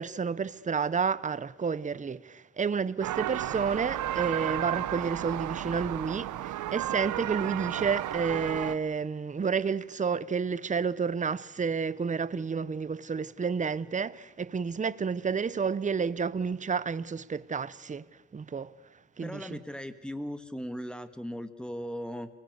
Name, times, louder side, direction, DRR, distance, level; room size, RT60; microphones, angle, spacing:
voice 1, 0.0-18.0 18.3-19.6, right 5 dB, 25° right, 0.8 m, -30 dB
sound 1, 3.0-8.7, right 13 dB, 80° right, 1.2 m, -33 dB
voice 2, 19.2-22.3, equal, 5° left, 1.8 m, -38 dB
29.5 x 20.0 x 8.1 m
cardioid pair, 90°, 30 cm